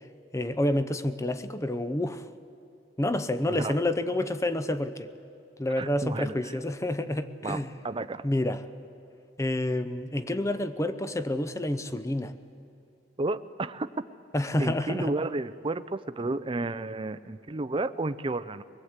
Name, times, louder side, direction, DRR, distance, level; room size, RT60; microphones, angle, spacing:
voice 1, 0.3-2.2 3.0-5.1 5.6-7.7 8.2-8.6 9.4-12.3 14.3-15.1, left 1 dB, 15° left, 0.7 m, -28 dB
voice 2, 5.8-6.5 7.4-8.3 13.2-13.9 14.6-18.6, right 2 dB, 25° right, 0.5 m, -32 dB
23.0 x 20.0 x 8.1 m
head